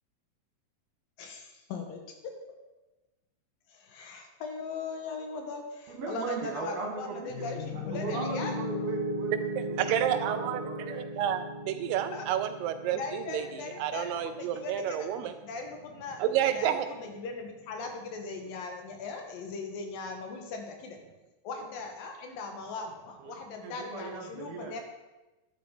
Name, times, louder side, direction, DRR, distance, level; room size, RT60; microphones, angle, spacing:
voice 1, 1.2-2.3 3.7-8.6 12.1-12.2 12.9-16.2 16.5-21.0 21.4-24.8, left 4 dB, 85° left, 4 dB, 3.3 m, -39 dB
voice 2, 5.9-11.0 23.6-24.8, right 4 dB, 50° right, 2 dB, 3.0 m, -38 dB
Piano, 7.3-15.4, left 1 dB, 70° left, 3.0 m, -37 dB
voice 3, 9.6-10.6 10.9-15.3 16.2-16.9 23.3-23.4, right 10 dB, 85° right, 9 dB, 2.3 m, -30 dB
12.0 x 10.0 x 5.0 m, 1.1 s
omnidirectional pair, 3.9 m